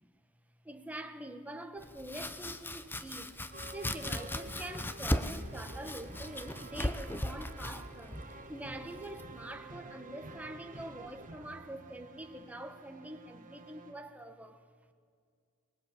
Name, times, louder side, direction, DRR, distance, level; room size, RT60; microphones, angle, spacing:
voice 1, 0.6-3.4 3.7-8.2 8.5-14.6, right 1 dB, 5° right, 1.5 m, -45 dB
Domestic sounds home sounds, 1.8-9.5, left 1 dB, 10° left, 0.9 m, -38 dB
sound 1, 3.5-14.0, right 2 dB, 35° right, 1.7 m, -50 dB
24.0 x 20.5 x 8.6 m
head